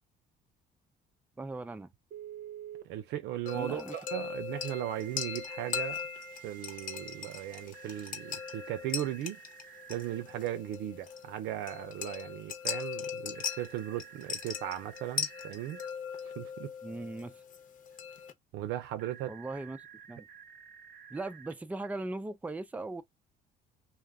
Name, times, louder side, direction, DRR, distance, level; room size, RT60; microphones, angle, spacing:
voice 1, 1.4-1.9 3.5-3.9 16.8-17.4 19.3-20.3 21.1-23.0, right 2 dB, 10° right, 0.4 m, -39 dB
Telephone, 2.1-2.9 4.7-10.2 13.3-15.9 19.0-21.5, right 10 dB, 60° right, 0.7 m, -50 dB
voice 2, 2.8-6.0 6.4-9.4 9.9-15.8 16.2-16.7 18.5-19.3, right 12 dB, 90° right, 0.7 m, -37 dB
sound 1, 3.5-18.3, left 7 dB, 55° left, 0.9 m, -40 dB
2.6 x 2.4 x 3.4 m
cardioid pair, 110°, 17 cm